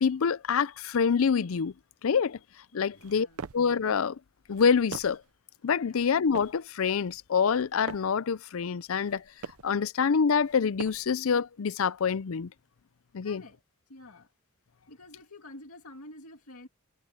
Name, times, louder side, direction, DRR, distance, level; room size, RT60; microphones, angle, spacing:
voice 1, 0.0-1.7 2.0-2.4 2.7-3.3 3.5-4.2 4.5-5.2 5.6-9.2 9.6-12.5 13.1-13.4, left 6 dB, 70° left, 0.5 m, -26 dB
voice 2, 2.7-3.4 5.8-6.0 13.2-13.6 13.9-14.3 14.9-16.7, left 2 dB, 90° left, 2.1 m, -49 dB
sound 1, 2.9-3.7 4.4-5.3 6.0-6.6 7.3-8.2 8.9-9.7 10.4-11.2, right 5 dB, 85° right, 0.6 m, -44 dB
head